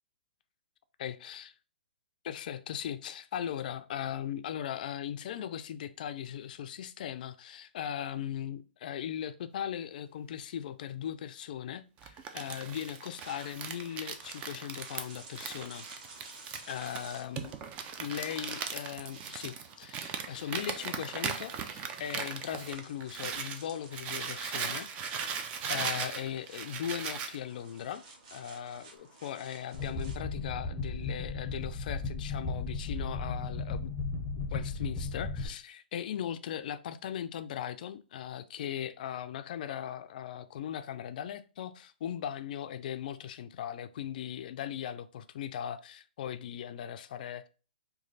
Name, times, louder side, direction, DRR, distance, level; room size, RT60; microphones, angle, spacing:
voice 1, 1.0-1.5 2.2-15.9 16.7-17.6 18.0-24.9 25.7-28.0 28.3-47.5, left 10 dB, 55° left, 0.3 m, -38 dB
Crumpling crinkling, 12.0-23.6 23.9-27.4, right 6 dB, 25° right, 0.4 m, -38 dB
sound 1, 13.1-30.2, right 3 dB, 45° right, 1.1 m, -53 dB
sound 2, 29.7-35.5, left 3 dB, 10° left, 0.7 m, -35 dB
3.1 x 2.4 x 3.9 m
hypercardioid pair, 140°, 6 cm